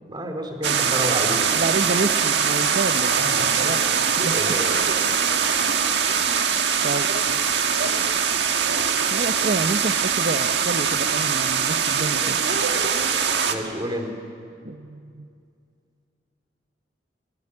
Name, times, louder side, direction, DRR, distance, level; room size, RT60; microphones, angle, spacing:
voice 1, 0.1-1.5 3.2-3.5 4.3-4.8 13.5-14.1, equal, 25° right, 4 dB, 3.1 m, -30 dB
sound 1, 0.6-13.5, right 7 dB, 70° right, 1.7 m, -22 dB
voice 2, 1.5-3.2 3.6-3.8 4.2-4.4 6.8-7.1 9.1-12.4 14.6-15.3, right 3 dB, 55° right, 8 dB, 0.8 m, -28 dB
Trickle dribble / Fill (with liquid), 1.6-9.0, left 4 dB, 60° left, 3.0 m, -42 dB
24.0 x 21.0 x 9.8 m, 2.4 s
head